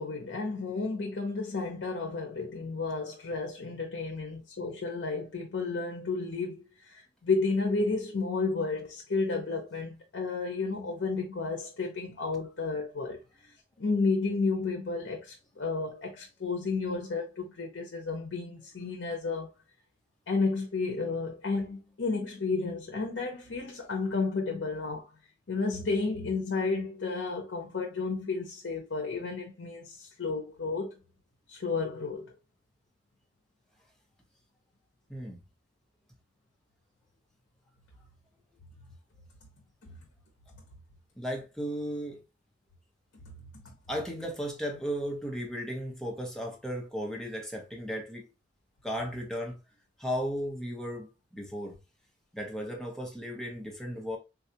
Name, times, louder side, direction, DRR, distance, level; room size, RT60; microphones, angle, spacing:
voice 1, 0.0-13.2 13.8-19.5 20.3-25.1 25.5-31.0 31.5-32.4 39.8-39.9 43.6-43.7, left 4 dB, 70° left, 0.7 m, -32 dB
voice 2, 41.2-42.2 43.9-48.2 48.8-49.6 50.0-51.8 52.3-54.2, equal, 5° left, 0.7 m, -35 dB
3.8 x 2.3 x 2.7 m
head